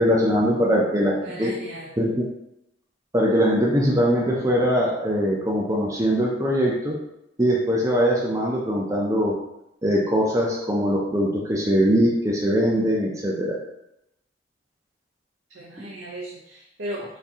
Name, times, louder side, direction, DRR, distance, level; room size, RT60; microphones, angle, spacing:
voice 1, 0.0-1.5 2.0-2.3 3.1-7.0 7.4-9.3 9.8-13.6, equal, 15° right, -3 dB, 0.5 m, -21 dB
voice 2, 1.2-1.9 15.5-17.2, right 1 dB, 75° right, -2 dB, 0.6 m, -36 dB
4.0 x 2.6 x 3.5 m, 0.83 s
head